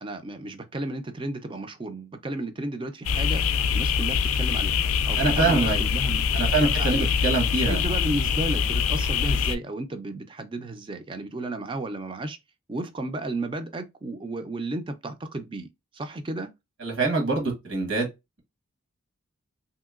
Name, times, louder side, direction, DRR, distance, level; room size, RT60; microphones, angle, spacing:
voice 1, 0.0-7.1 7.7-12.4 12.7-15.7 15.9-16.5, right 2 dB, 25° right, 0.4 m, -33 dB
sound 1, 3.0-9.6, left 6 dB, 85° left, 0.3 m, -24 dB
voice 2, 5.2-5.8 6.3-7.8 16.8-18.1, right 3 dB, 70° right, 1.3 m, -24 dB
3.1 x 2.8 x 2.3 m
head